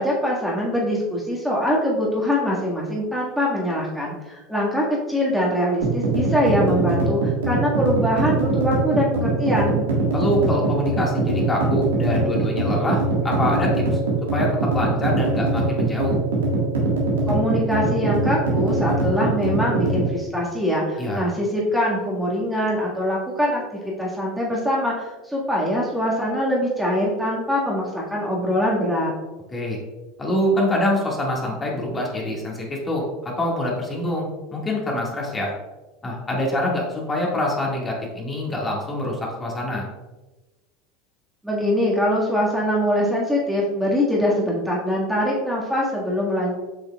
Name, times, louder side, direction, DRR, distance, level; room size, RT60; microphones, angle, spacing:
voice 1, 0.0-9.8 17.3-23.6 24.0-29.1 41.4-46.6, equal, ahead, -5 dB, 1.7 m, -23 dB
sound 1, 5.8-20.1, right 2 dB, 90° right, 1.6 m, -22 dB
voice 2, 10.1-14.0 14.3-16.1 21.0-21.3 29.5-29.8 30.2-35.5 36.0-39.9, left 1 dB, 20° left, -2 dB, 1.8 m, -25 dB
7.8 x 5.5 x 2.3 m, 1.1 s
hypercardioid pair, 85°, 0 cm